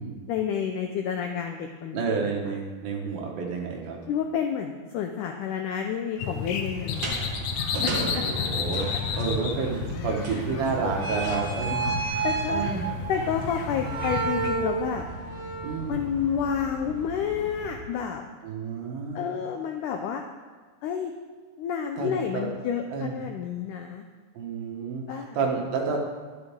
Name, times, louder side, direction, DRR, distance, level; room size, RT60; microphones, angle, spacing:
voice 1, 0.3-2.0 4.1-7.2 7.8-8.2 10.3-10.4 11.3-11.4 12.2-12.8 13.1-15.0 15.9-18.2 19.1-20.2 20.8-21.1 21.6-24.1 25.1-25.4, left 7 dB, 85° left, 4 dB, 1.8 m, -30 dB
voice 2, 1.9-4.0 7.7-12.9 15.6-16.1 18.4-19.2 22.0-22.5 22.9-23.2 24.3-26.0, right 4 dB, 75° right, 0 dB, 3.2 m, -30 dB
sound 1, 6.2-14.5, left 5 dB, 70° left, 2.0 m, -32 dB
sound 2, 6.9-17.8, right 4 dB, 45° right, 2.3 m, -33 dB
11.5 x 11.0 x 3.6 m, 1.5 s
omnidirectional pair, 4.3 m